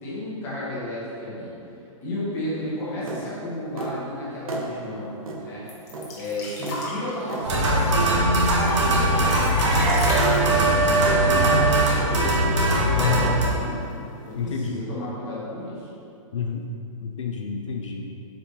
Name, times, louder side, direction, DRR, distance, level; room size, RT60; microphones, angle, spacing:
voice 1, 0.0-1.5 2.0-5.6 6.1-8.3 8.8-12.4 12.7-13.8 14.2-15.9, left 1 dB, 10° left, -9 dB, 1.2 m, -33 dB
sound 1, 3.1-3.3 3.8-4.0 4.5-4.7 5.3-5.4 5.9-6.1 6.6-6.8 7.3-7.5 8.0-8.2 8.6-8.8, right 3 dB, 85° right, 1.2 m, -33 dB
sound 2, 5.7-12.1 12.4-12.5 12.8-13.5 14.3-14.4, left 2 dB, 30° left, 1.1 m, -36 dB
sound 3, 7.4-13.5, right 1 dB, 60° right, 1.4 m, -20 dB
voice 2, 13.0-13.3 14.4-14.8 16.3-16.7 17.0-18.1, left 7 dB, 60° left, 1 dB, 0.6 m, -28 dB
5.8 x 5.0 x 4.1 m, 2.7 s
hypercardioid pair, 180°, 18 cm